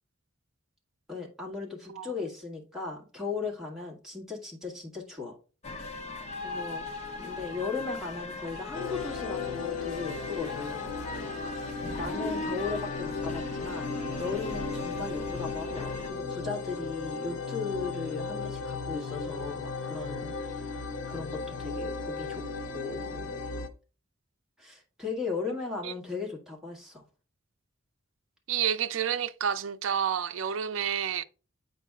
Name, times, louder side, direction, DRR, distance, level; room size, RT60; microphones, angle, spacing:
voice 1, 1.1-5.4 6.4-6.9 7.1-11.3 12.0-23.6 24.6-27.0, left 4 dB, ahead, 1.7 m, -37 dB
sound 1, 5.6-16.1, left 2 dB, 35° left, 0.7 m, -39 dB
sound 2, 8.7-23.7, left 4 dB, 75° left, 0.7 m, -36 dB
voice 2, 28.5-31.2, right 8 dB, 80° right, 0.4 m, -30 dB
8.2 x 5.2 x 2.3 m
head